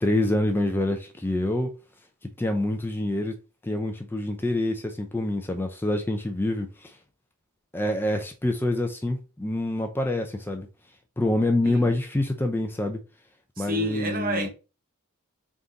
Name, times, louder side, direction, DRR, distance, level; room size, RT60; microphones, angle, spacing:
voice 1, 0.0-1.7 2.4-3.3 3.6-6.9 7.7-10.7 11.2-13.0 13.6-14.5, left 1 dB, 10° left, 0.3 m, -26 dB
voice 2, 13.6-14.5, right 1 dB, 40° right, 0.8 m, -29 dB
3.5 x 2.5 x 3.9 m
head